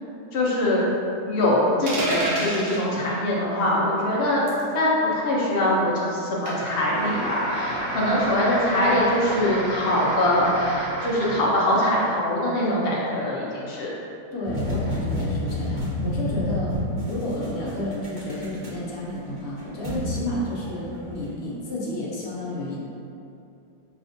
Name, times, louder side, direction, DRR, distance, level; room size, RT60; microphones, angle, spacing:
voice 1, 0.3-0.8 1.3-13.9, left 1 dB, 90° left, -6 dB, 0.5 m, -23 dB
sound 1, 1.9-2.8 4.5-4.7 6.5-6.8, right 2 dB, 85° right, 1.4 m, -27 dB
sound 2, 6.6-11.6, right 1 dB, 60° right, 1.1 m, -31 dB
voice 2, 14.3-16.8 17.1-22.8, left 1 dB, 55° left, -6 dB, 0.7 m, -31 dB
sound 3, 14.4-21.3, left 1 dB, 30° right, 1.0 m, -29 dB
5.9 x 2.5 x 2.5 m, 2.7 s
omnidirectional pair, 1.9 m